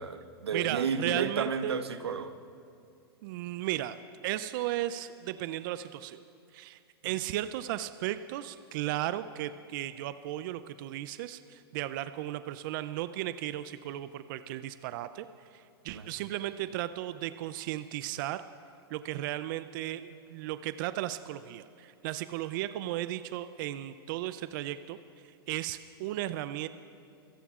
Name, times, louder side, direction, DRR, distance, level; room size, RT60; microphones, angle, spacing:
voice 1, 0.0-2.3 15.9-16.1, right 6 dB, 90° right, 11 dB, 0.8 m, -32 dB
voice 2, 0.5-1.7 3.2-4.0 4.2-6.2 6.5-15.3 15.5-18.4 18.9-25.0 25.5-26.7, right 14 dB, 55° right, 13 dB, 0.5 m, -35 dB
26.0 x 17.0 x 2.5 m, 2.4 s
hypercardioid pair, 115°, 13 cm